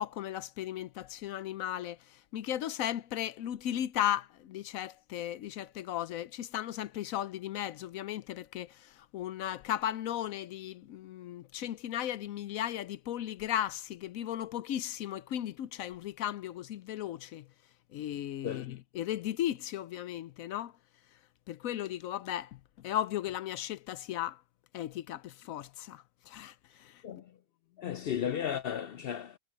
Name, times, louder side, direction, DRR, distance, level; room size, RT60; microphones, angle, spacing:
voice 1, 0.0-17.5 17.9-20.7 21.5-24.4 24.7-27.0 27.8-28.0, left 11 dB, 85° left, 1.1 m, -36 dB
voice 2, 27.8-29.4, left 9 dB, 65° left, 0.6 m, -34 dB
omnidirectional pair, 1.4 m